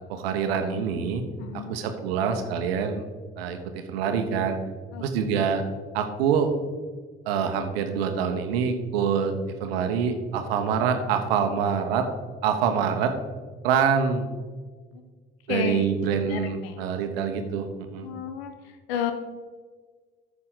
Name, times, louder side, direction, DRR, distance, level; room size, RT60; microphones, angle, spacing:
voice 1, 0.1-1.2 1.5-3.0 3.4-4.6 5.0-5.6 5.9-6.5 7.3-12.1 12.4-13.1 13.6-14.3 15.5-18.1, right 7 dB, 80° right, 7 dB, 1.0 m, -25 dB
voice 2, 1.4-1.8 4.9-5.0 5.4-5.5 15.5-16.8 18.0-18.5 18.9-19.1, left 8 dB, 80° left, 8 dB, 1.0 m, -31 dB
14.0 x 5.9 x 4.0 m, 1.5 s
hypercardioid pair, 50°, 30 cm